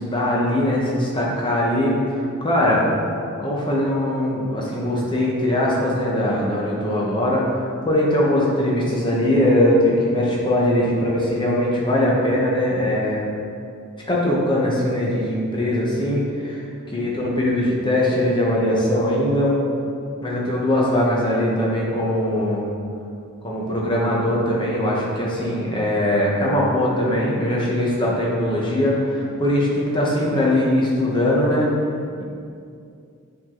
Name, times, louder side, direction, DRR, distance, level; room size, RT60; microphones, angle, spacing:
voice 1, 0.0-2.0 2.4-2.8 3.4-13.3 14.1-16.6 16.9-19.6 20.2-22.7 23.4-31.7, left 1 dB, 20° left, -4 dB, 1.1 m, -21 dB
7.2 x 4.9 x 3.9 m, 2.4 s
head